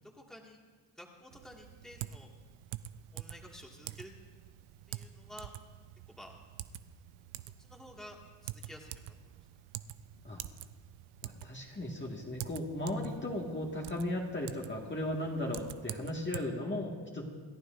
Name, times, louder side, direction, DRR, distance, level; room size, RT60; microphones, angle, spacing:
voice 1, 0.1-0.6 1.0-2.3 3.1-4.1 4.9-5.5 6.1-6.4 7.6-9.3, left 1 dB, ahead, -1 dB, 2.0 m, -51 dB
Typing, 1.3-16.4, right 13 dB, 85° right, 0.6 m, -47 dB
voice 2, 11.2-17.2, left 1 dB, 25° left, -2 dB, 1.9 m, -36 dB
27.0 x 11.5 x 2.6 m, 1.5 s
cardioid pair, 70°, 48 cm